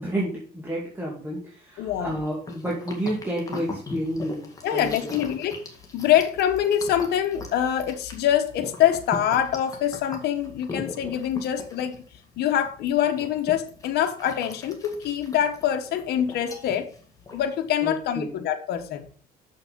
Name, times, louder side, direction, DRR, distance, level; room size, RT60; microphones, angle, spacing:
voice 1, 0.0-5.3 17.8-18.4, right 1 dB, 10° right, -4 dB, 2.3 m, -30 dB
voice 2, 1.8-2.2 4.6-5.6 5.9-11.9 12.4-16.9 17.3-19.1, left 10 dB, 70° left, 5 dB, 1.2 m, -24 dB
sound 1, 1.9-17.7, left 2 dB, 20° left, 2.0 m, -41 dB
6.8 x 5.9 x 5.2 m, 0.43 s
cardioid pair, 110°, 17 cm